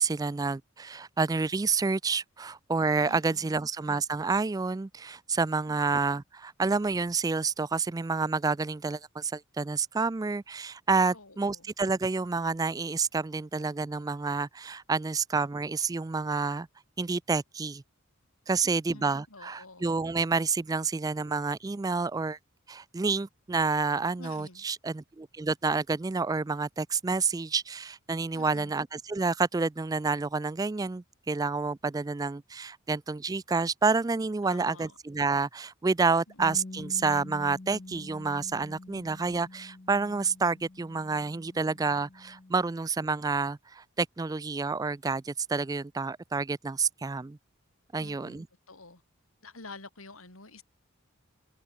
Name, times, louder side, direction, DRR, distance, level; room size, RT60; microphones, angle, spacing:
voice 1, 0.0-16.7 17.0-17.8 18.5-22.4 22.7-47.4 47.9-48.5, right 4 dB, 15° right, 0.3 m, -29 dB
voice 2, 3.0-3.6 11.1-11.7 18.9-19.9 24.2-24.6 28.3-28.7 34.4-35.0 36.3-36.4 48.0-49.0 49.4-50.6, left 3 dB, 85° left, 6.2 m, -49 dB
Bass guitar, 36.4-42.6, left 2 dB, 35° left, 0.7 m, -46 dB
head